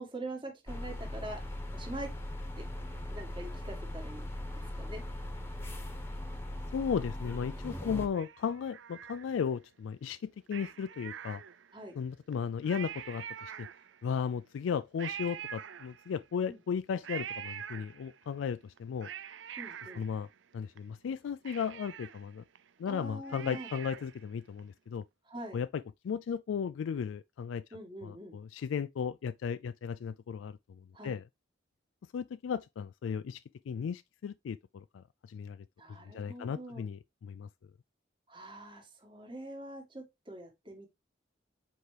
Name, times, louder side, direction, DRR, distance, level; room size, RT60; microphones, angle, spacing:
voice 1, 0.0-1.4 1.7-2.1 2.6-2.7 3.1-4.2 4.5-5.0 7.8-7.9 11.7-11.9 16.5-16.6 19.6-20.0 22.9-23.7 25.3-25.6 27.7-28.4 30.9-31.2 35.8-36.9 38.3-40.9, right 1 dB, 25° right, 1.8 m, -44 dB
sound 1, 0.7-8.1, left 1 dB, 10° left, 1.1 m, -39 dB
voice 2, 6.7-11.4 12.0-13.7 14.0-19.1 20.0-20.3 20.5-22.4 22.8-25.1 25.5-27.6 28.0-31.2 32.1-35.7 36.1-37.5, left 7 dB, 90° left, 0.3 m, -35 dB
Cat, 8.1-9.6 10.5-11.9 12.3-12.4 12.6-14.1 15.0-16.3 17.0-18.3 18.8-20.8 21.1-21.2 21.4-24.2 24.6-24.7, right 9 dB, 75° right, 0.5 m, -45 dB
8.0 x 4.7 x 3.3 m
head